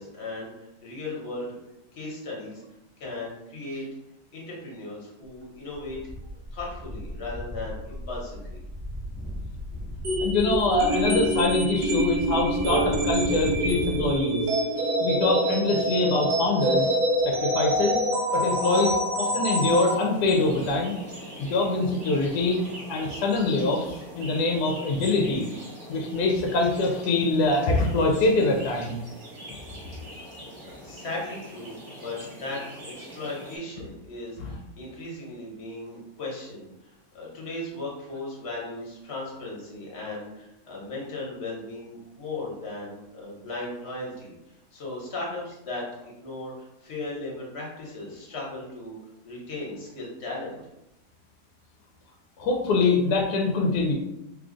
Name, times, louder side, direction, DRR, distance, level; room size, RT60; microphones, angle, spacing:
voice 1, 0.0-1.6 1.9-2.6 3.0-3.8 4.3-6.0 6.5-8.6 30.8-44.3 44.7-49.0 49.2-50.6, left 2 dB, 45° left, -3 dB, 1.2 m, -37 dB
raindrops person in way, 5.2-5.4 5.7-14.2, equal, 10° right, 0.6 m, -36 dB
sound 1, 10.0-20.0, right 1 dB, 75° right, 1.2 m, -26 dB
voice 2, 10.2-14.4 15.0-16.9 17.2-18.0 18.3-21.0 21.4-22.6 22.9-25.5 25.9-29.0 34.4-34.6 52.4-53.9, left 3 dB, 75° left, 1 dB, 1.1 m, -24 dB
sound 2, 19.5-33.6, equal, 35° right, 0.9 m, -43 dB
3.2 x 2.4 x 3.7 m, 0.89 s
omnidirectional pair, 1.8 m